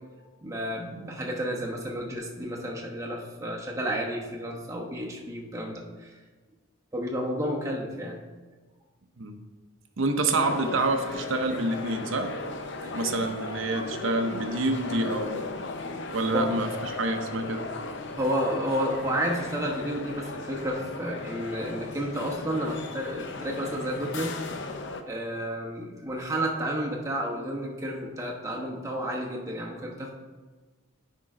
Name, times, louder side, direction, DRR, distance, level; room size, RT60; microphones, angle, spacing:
voice 1, 0.4-6.1 6.9-8.2 16.3-16.5 18.1-24.4 25.1-30.1, equal, 15° right, -1 dB, 1.0 m, -31 dB
voice 2, 10.0-12.3 12.9-15.5 16.1-17.7, right 2 dB, 65° right, 5 dB, 0.7 m, -27 dB
sound 1, 10.4-25.0, left 3 dB, 55° left, 0.6 m, -37 dB
9.7 x 3.7 x 4.8 m, 1.3 s
head